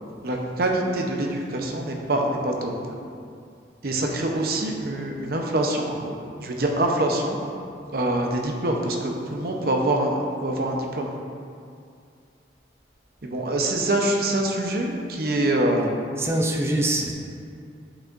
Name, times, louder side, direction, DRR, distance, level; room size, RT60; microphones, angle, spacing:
voice 1, 0.2-2.7 3.8-6.1 6.4-7.4 7.9-11.1 13.2-15.9, right 1 dB, 55° right, 1 dB, 0.7 m, -25 dB
voice 2, 16.2-17.1, right 1 dB, 15° right, 2 dB, 0.4 m, -23 dB
8.2 x 6.1 x 2.5 m, 2.3 s
head